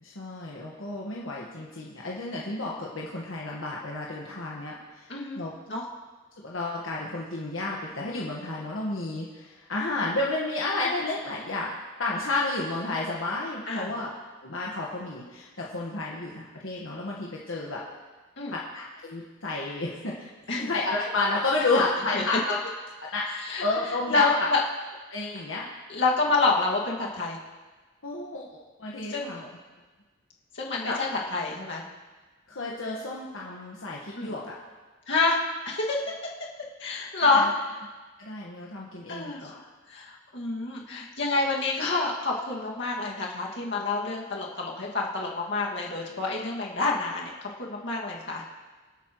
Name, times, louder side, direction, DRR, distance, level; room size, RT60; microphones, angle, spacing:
voice 1, 0.0-5.1 5.3-5.5 6.4-11.7 12.0-14.1 14.4-17.8 18.5-20.3 20.6-22.6 23.1-23.2 23.6-24.3 25.1-25.6 28.0-28.4 28.8-29.5 30.8-30.9 32.5-34.5 37.2-37.5 38.2-39.6, left 2 dB, 80° left, -4 dB, 1.5 m, -31 dB
voice 2, 5.1-5.4 5.7-5.8 13.7-14.0 18.4-18.6 20.5-20.7 21.7-21.8 22.1-22.2 23.5-23.6 24.1-24.6 25.9-27.4 29.1-29.3 30.5-31.8 34.2-34.3 35.1-35.4 35.7-36.0 36.8-37.5 39.1-39.5 39.9-48.5, left 3 dB, 60° left, -3 dB, 2.2 m, -27 dB
26.0 x 8.6 x 3.1 m, 1.3 s
head